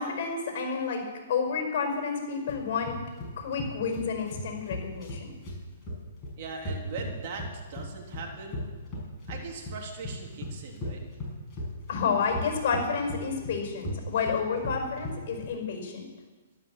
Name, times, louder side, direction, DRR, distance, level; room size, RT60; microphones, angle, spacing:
voice 1, 0.0-3.0 3.4-5.3 11.9-16.0, left 5 dB, 50° left, 3 dB, 5.2 m, -30 dB
sound 1, 2.5-15.5, left 1 dB, 20° left, 6.1 m, -37 dB
voice 2, 6.4-8.6 9.3-11.0, right 4 dB, 45° right, 1 dB, 3.1 m, -40 dB
13.0 x 12.0 x 7.2 m, 1.3 s
hypercardioid pair, 145°, 0 cm